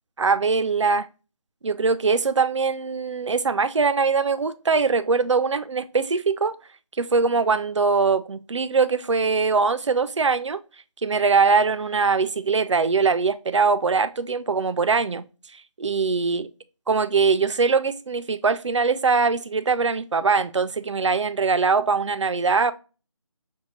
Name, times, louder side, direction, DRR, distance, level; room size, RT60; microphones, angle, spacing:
voice 1, 0.2-1.1 1.6-6.6 7.0-10.6 11.0-15.2 15.8-16.5 16.9-22.7, right 4 dB, 60° right, 0.4 m, -22 dB
6.1 x 2.2 x 2.7 m
figure-of-eight pair, 170°, 17 cm